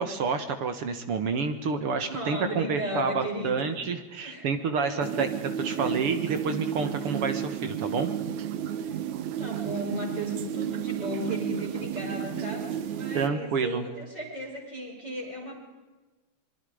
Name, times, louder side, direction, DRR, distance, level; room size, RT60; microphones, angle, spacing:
voice 1, 0.0-5.3 5.6-8.1 13.1-13.9, right 5 dB, 55° right, 8 dB, 2.1 m, -29 dB
voice 2, 2.0-3.7 4.2-4.5 4.8-5.3 5.7-5.9 8.8-12.7 12.9-15.5, equal, 35° right, -5 dB, 5.8 m, -36 dB
sound 1, 5.0-13.3, right 9 dB, 80° right, 2.4 m, -32 dB
26.0 x 23.0 x 5.1 m, 1.2 s
omnidirectional pair, 3.4 m